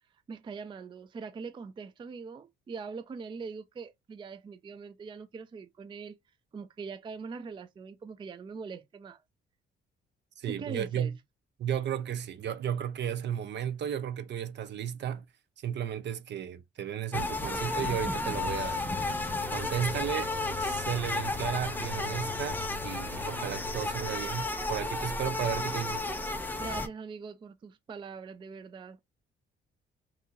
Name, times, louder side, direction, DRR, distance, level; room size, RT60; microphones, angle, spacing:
voice 1, 0.3-6.2 6.5-9.2 10.5-11.1 26.6-29.0, right 5 dB, 25° right, 0.3 m, -42 dB
voice 2, 10.4-11.2 11.6-15.2 15.6-19.2 19.5-20.3 20.6-26.0, right 9 dB, 60° right, 0.7 m, -34 dB
sound 1, 17.1-26.9, left 2 dB, 10° left, 0.7 m, -33 dB
Truck, 18.3-24.0, left 15 dB, 75° left, 0.4 m, -44 dB
2.8 x 2.7 x 3.6 m
cardioid pair, 90°, 20 cm